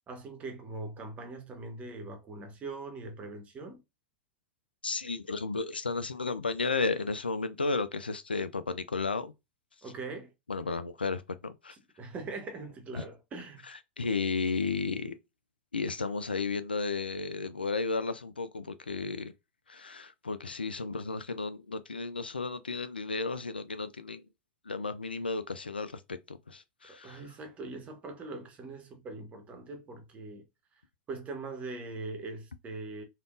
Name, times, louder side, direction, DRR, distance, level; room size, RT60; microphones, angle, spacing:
voice 1, 0.1-3.8 9.8-10.3 12.0-13.7 26.9-30.4 31.1-33.0, right 3 dB, 25° right, 1.0 m, -41 dB
voice 2, 4.8-9.3 10.5-11.8 12.9-13.0 14.0-15.2 15.7-19.3 19.7-24.2 24.6-27.2, left 4 dB, 85° left, 0.4 m, -33 dB
3.4 x 2.5 x 2.4 m
figure-of-eight pair, 90°, 5 cm